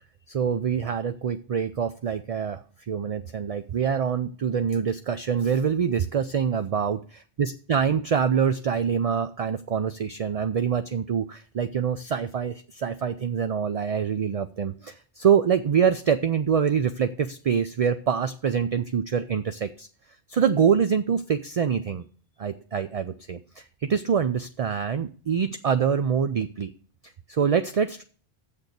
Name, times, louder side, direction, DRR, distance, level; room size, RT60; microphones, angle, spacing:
voice 1, 0.3-2.6 2.9-19.9 20.3-22.0 22.4-23.6 23.9-26.7 27.3-28.0, right 7 dB, 45° right, 10 dB, 0.5 m, -25 dB
7.2 x 6.6 x 8.0 m, 0.43 s
omnidirectional pair, 1.1 m